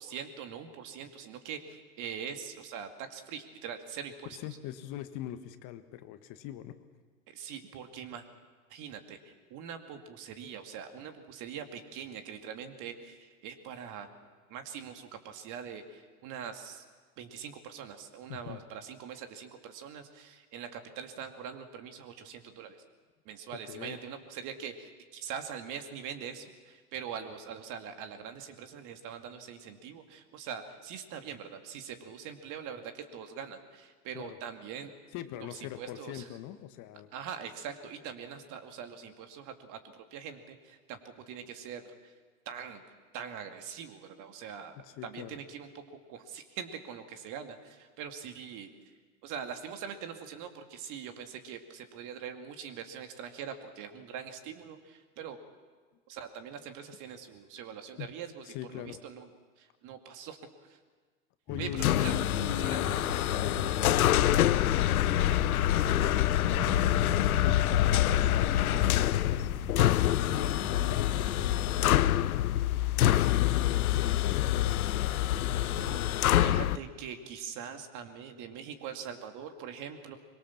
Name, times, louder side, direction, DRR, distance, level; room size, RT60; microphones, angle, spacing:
voice 1, 0.0-4.4 7.3-8.2 8.7-14.1 14.5-16.8 17.2-22.8 23.2-34.9 35.4-36.3 37.1-42.1 42.5-42.8 43.1-44.7 45.0-48.7 49.2-55.4 56.1-59.3 59.6-60.8 61.6-61.7 61.9-62.1 62.6-62.9 75.8-76.0 76.4-80.2, right 7 dB, 45° right, 7 dB, 2.7 m, -43 dB
voice 2, 4.3-6.7 18.3-18.6 23.7-24.0 34.1-34.4 35.1-37.1 44.8-45.4 58.0-58.1 58.5-59.0 61.5-62.9 63.2-63.8 64.0-67.2 67.4-69.5 70.1-72.4 73.2-75.1 75.4-76.4, left 12 dB, 45° left, 10 dB, 1.6 m, -41 dB
sound 1, 61.5-71.8, left 1 dB, 25° left, 3.1 m, -40 dB
sound 2, 61.8-76.8, left 13 dB, 75° left, 0.9 m, -26 dB
23.5 x 22.5 x 7.4 m, 1.5 s
hypercardioid pair, 100°, 43 cm